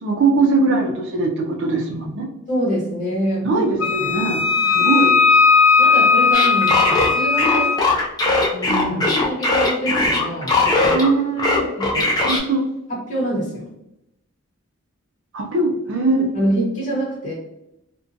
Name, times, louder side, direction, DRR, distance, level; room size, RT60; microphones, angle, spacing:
voice 1, 0.0-2.3 3.4-5.2 8.5-9.1 10.9-11.6 12.2-12.7 15.3-16.3, right 3 dB, 60° right, 2 dB, 0.4 m, -21 dB
voice 2, 2.5-4.1 4.7-4.9 5.8-7.8 8.8-11.0 11.8-12.2 12.9-13.7 16.3-17.3, right 1 dB, 35° left, -6 dB, 1.0 m, -26 dB
Wind instrument woodwind instrument, 3.8-7.8, left 5 dB, 85° left, 0.5 m, -16 dB
sound 1, 6.3-11.1 11.4-12.4, left 2 dB, 20° left, 0.3 m, -19 dB
2.5 x 2.1 x 2.5 m, 0.84 s
head